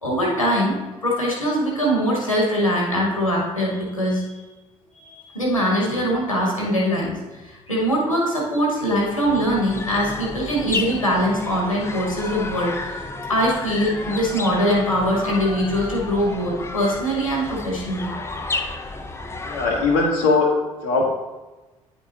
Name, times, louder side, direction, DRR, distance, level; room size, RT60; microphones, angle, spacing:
voice 1, 0.0-0.7 1.0-4.4 4.9-13.0 13.3-18.2, equal, 90° left, -3 dB, 1.5 m, -22 dB
sound 1, 8.8-20.4, left 3 dB, 15° left, 0.6 m, -32 dB
voice 2, 19.5-21.1, left 3 dB, 65° left, -3 dB, 0.9 m, -20 dB
9.7 x 4.4 x 2.9 m, 1.2 s
figure-of-eight pair, 50°, 17 cm